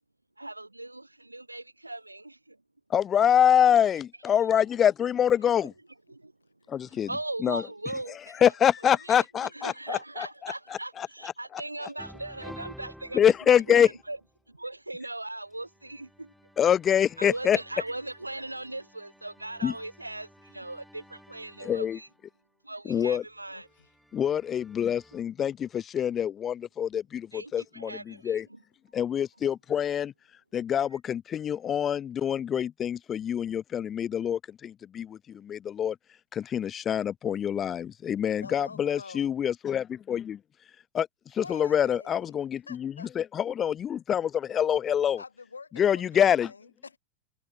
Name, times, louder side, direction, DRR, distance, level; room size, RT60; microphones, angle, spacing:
voice 1, 0.4-2.6 4.5-4.6 6.1-6.3 6.8-8.5 8.8-14.2 14.5-16.3 17.2-22.1 22.6-23.7 27.3-28.6, right 2 dB, 85° right, 2.5 m, -39 dB
voice 2, 2.9-5.7 6.7-7.1 7.4-7.6 8.4-11.3 13.1-13.9 16.6-17.6 19.6-19.7 21.6-22.0 22.9-23.2 24.1-28.5 28.9-30.1 30.5-36.0 36.3-40.4 40.9-41.1 41.3-45.2 45.8-46.5, left 9 dB, 25° left, 0.9 m, -26 dB
sound 1, 12.0-14.4 15.6-22.2 23.3-25.2, equal, ahead, 5.2 m, -52 dB
voice 3, 23.5-23.9 38.4-39.3 41.4-42.3 42.7-43.1 45.2-47.0, left 4 dB, 75° left, 7.6 m, -46 dB
figure-of-eight pair, 90°, 0 cm